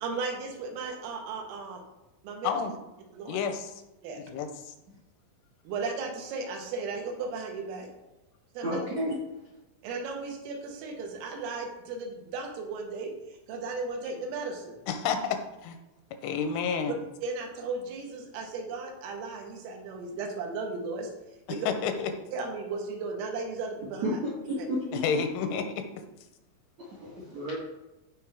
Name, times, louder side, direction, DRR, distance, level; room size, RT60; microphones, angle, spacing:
voice 1, 0.0-1.8 2.2-2.6 3.1-3.4 4.0-4.2 5.7-7.9 8.6-8.8 9.8-14.8 16.9-17.0 17.2-21.1 21.5-21.7 22.3-24.2 24.6-24.7, right 4 dB, 85° right, 2 dB, 4.1 m, -35 dB
voice 2, 3.3-3.7 4.2-4.5 14.9-15.8 16.2-17.0 21.7-22.1 24.9-25.8, left 6 dB, 85° left, 7 dB, 3.2 m, -30 dB
voice 3, 8.6-9.2 24.0-24.1 24.5-25.0 27.0-27.5, equal, 70° right, -5 dB, 1.6 m, -31 dB
15.5 x 5.3 x 3.6 m, 0.97 s
omnidirectional pair, 5.7 m